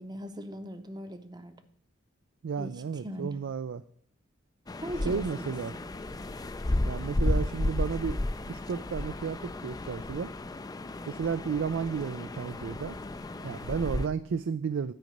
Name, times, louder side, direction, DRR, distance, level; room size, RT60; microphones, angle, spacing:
voice 1, 0.0-1.6 2.6-2.7 3.0-3.3 4.8-5.5, equal, 20° right, 10 dB, 0.7 m, -39 dB
voice 2, 2.4-3.8 5.1-5.7 6.9-8.2 8.5-10.3 11.1-13.0 13.4-14.9, right 6 dB, 65° right, 13 dB, 0.4 m, -32 dB
sound 1, 4.7-14.1, left 1 dB, 20° left, 0.4 m, -33 dB
9.1 x 5.2 x 7.8 m, 0.65 s
head